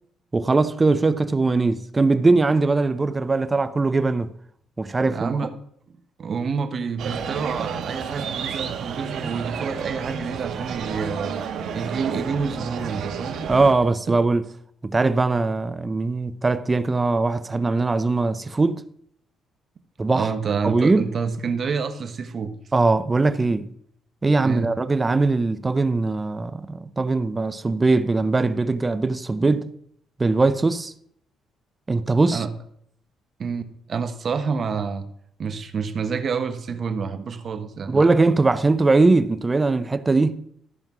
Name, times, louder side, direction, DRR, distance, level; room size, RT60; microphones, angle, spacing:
voice 1, 0.3-4.3 4.8-5.4 13.5-14.4 14.8-18.8 20.0-20.3 20.6-21.1 22.7-23.7 24.2-29.7 30.2-30.9 31.9-32.4 37.9-40.4, right 3 dB, 20° right, 0.6 m, -20 dB
voice 2, 5.1-5.5 6.2-11.3 11.7-13.4 14.1-14.2 20.1-22.5 24.4-24.7 32.3-32.5 33.4-35.1 35.4-38.1, right 5 dB, 45° right, 1.1 m, -28 dB
sound 1, 7.0-13.7, right 7 dB, 70° right, 1.3 m, -31 dB
13.5 x 5.3 x 6.0 m
cardioid pair, 110°, 0 cm